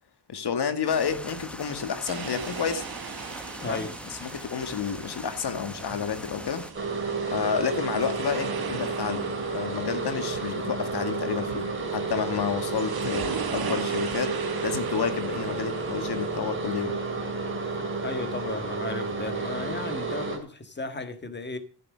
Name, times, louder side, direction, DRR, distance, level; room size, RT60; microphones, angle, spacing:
voice 1, 0.3-2.9 3.6-3.9 4.2-6.7 7.3-17.0, left 7 dB, 65° left, 1.8 m, -30 dB
sound 1, 0.9-6.7, equal, 5° left, 1.0 m, -41 dB
sound 2, 2.1-16.4, right 7 dB, 60° right, 1.4 m, -40 dB
voice 2, 3.6-4.0 18.0-21.6, left 2 dB, 25° left, 1.6 m, -35 dB
sound 3, 6.7-20.4, right 4 dB, 30° right, 2.6 m, -31 dB
14.0 x 7.5 x 6.2 m
wide cardioid pair, 170°, 42 cm